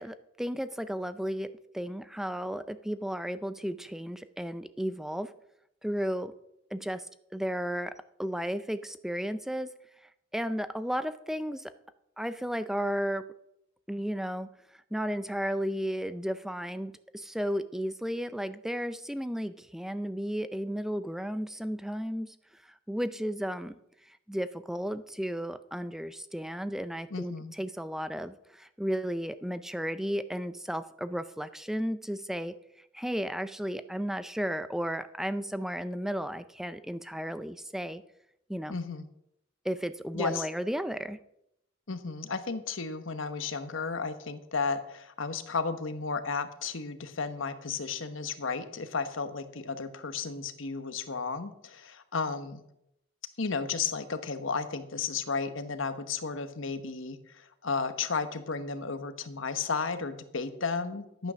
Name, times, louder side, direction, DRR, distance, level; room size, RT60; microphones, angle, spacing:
voice 1, 0.0-5.3 5.8-6.3 6.7-7.9 8.2-9.7 10.3-11.7 12.2-13.3 13.9-14.5 14.9-22.3 22.6-23.8 24.1-32.5 32.9-38.0 38.5-38.8 39.6-41.2, equal, ahead, 12 dB, 0.4 m, -34 dB
voice 2, 27.1-27.5 38.7-39.1 40.1-40.5 41.9-52.6 53.4-61.3, left 4 dB, 85° left, 10 dB, 1.1 m, -33 dB
11.5 x 9.0 x 6.2 m, 0.79 s
head